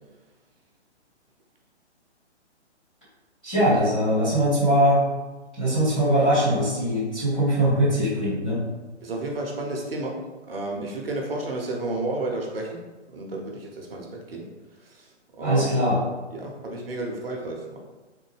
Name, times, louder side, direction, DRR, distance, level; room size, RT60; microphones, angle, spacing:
voice 1, 3.4-5.0 5.6-8.6 15.4-16.0, equal, 10° left, -17 dB, 0.4 m, -21 dB
voice 2, 9.0-10.2 10.5-12.8 13.1-14.4 14.8-15.1 15.4-15.7 16.3-17.8, right 2 dB, 55° right, 0 dB, 0.8 m, -31 dB
3.4 x 2.1 x 3.2 m, 1.2 s
figure-of-eight pair, 135°, 35 cm